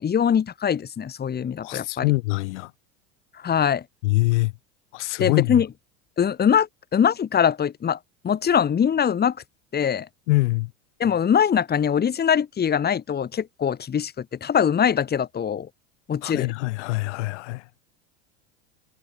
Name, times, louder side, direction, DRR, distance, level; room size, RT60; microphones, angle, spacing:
voice 1, 0.0-2.1 3.4-3.8 5.2-5.7 6.2-8.0 8.2-9.4 9.7-10.1 11.0-15.7 16.1-16.5, left 8 dB, 25° left, 4.0 m, -22 dB
voice 2, 1.6-2.7 4.0-4.5 4.9-5.6 10.3-10.7 16.2-17.6, left 22 dB, 75° left, 7.2 m, -24 dB
supercardioid pair, 115°, 35 cm